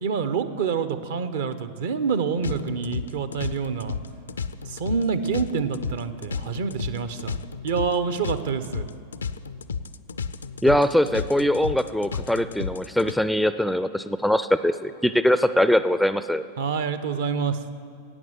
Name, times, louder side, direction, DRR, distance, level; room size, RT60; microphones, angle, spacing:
voice 1, 0.0-4.0 4.6-7.4 7.6-8.9 16.6-17.6, right 6 dB, 60° right, 12 dB, 0.7 m, -27 dB
sound 1, 2.4-13.1, left 5 dB, 70° left, 0.4 m, -32 dB
voice 2, 10.6-16.5, left 1 dB, ahead, 12 dB, 0.4 m, -22 dB
12.0 x 8.9 x 7.8 m, 2.4 s
figure-of-eight pair, 90°, 0 cm